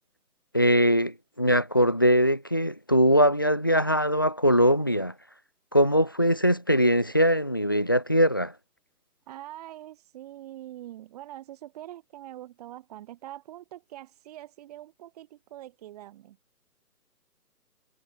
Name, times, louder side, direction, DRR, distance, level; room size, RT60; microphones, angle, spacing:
voice 1, 0.5-5.1 5.7-8.5, equal, 15° left, 0.7 m, -22 dB
voice 2, 9.3-16.4, right 14 dB, 25° right, 4.3 m, -44 dB
hypercardioid pair, 165°, 47 cm